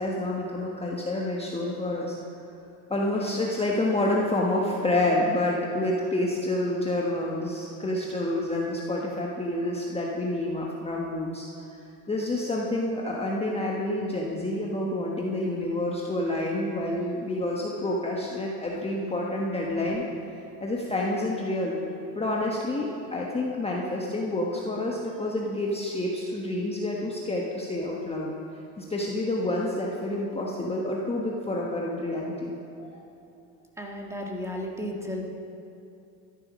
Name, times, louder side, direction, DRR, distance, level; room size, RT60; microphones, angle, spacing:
voice 1, 0.0-2.2 2.9-11.5 12.1-20.0 20.6-21.8 22.1-28.3 28.8-33.0, left 1 dB, 15° left, -3 dB, 1.3 m, -28 dB
voice 2, 33.8-35.3, left 1 dB, 5° right, 0 dB, 1.8 m, -34 dB
13.0 x 9.8 x 6.3 m, 2.7 s
supercardioid pair, 95°, 44 cm